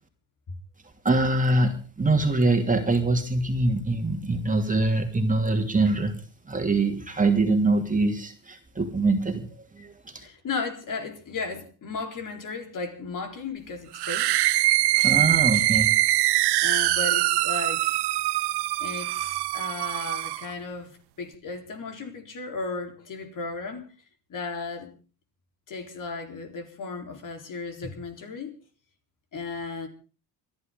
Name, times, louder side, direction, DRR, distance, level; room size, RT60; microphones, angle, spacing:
voice 1, 1.0-6.1 6.5-10.2 15.0-15.9, right 2 dB, 20° right, 2.8 m, -24 dB
voice 2, 10.2-14.7 16.6-18.0 18.8-23.9 24.3-24.9 25.7-28.5 29.3-29.9, left 4 dB, 50° left, 4.2 m, -35 dB
sound 1, 13.9-20.5, right 17 dB, 70° right, 0.9 m, -23 dB
29.0 x 11.5 x 3.9 m
cardioid pair, 95°, 41 cm